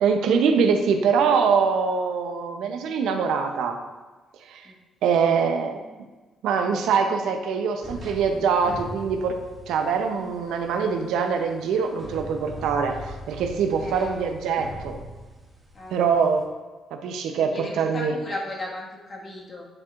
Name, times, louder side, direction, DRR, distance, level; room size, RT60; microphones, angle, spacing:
voice 1, 0.0-3.8 4.5-4.7 5.0-5.8 6.4-9.4 9.7-15.0 15.9-16.4 16.9-18.1, right 6 dB, 85° right, 5 dB, 0.7 m, -23 dB
sound 1, 7.8-16.4, equal, 20° right, 2.0 m, -41 dB
voice 2, 13.8-14.1 15.7-15.9 17.4-19.7, left 1 dB, 40° left, -2 dB, 1.7 m, -36 dB
9.8 x 4.5 x 2.5 m, 1.3 s
cardioid pair, 90°, 0 cm